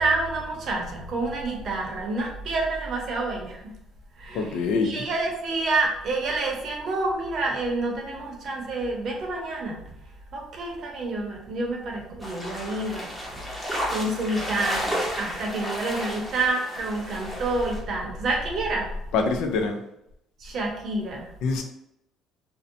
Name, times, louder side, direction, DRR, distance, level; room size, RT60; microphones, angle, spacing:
voice 1, 0.0-3.7 4.2-9.8 10.3-13.4 13.9-18.9 20.4-21.3, right 2 dB, 55° right, 0 dB, 0.7 m, -28 dB
voice 2, 4.3-5.0 19.1-19.8 21.4-21.6, left 4 dB, 80° left, 4 dB, 0.4 m, -25 dB
sound 1, 12.2-17.8, equal, 5° left, 0.7 m, -32 dB
2.6 x 2.1 x 2.6 m, 0.79 s
cardioid pair, 110°, 0 cm